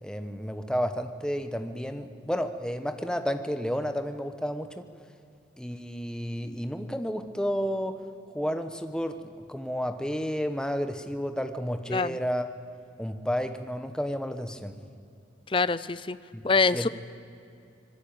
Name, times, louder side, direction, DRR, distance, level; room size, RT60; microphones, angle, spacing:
voice 1, 0.0-4.8 5.6-8.0 8.3-12.5 13.0-14.7 16.3-16.4 16.7-16.9, equal, 5° left, 8 dB, 1.1 m, -31 dB
voice 2, 15.5-16.2 16.4-16.9, left 4 dB, 25° left, 16 dB, 0.6 m, -24 dB
25.5 x 20.5 x 8.9 m, 2.5 s
head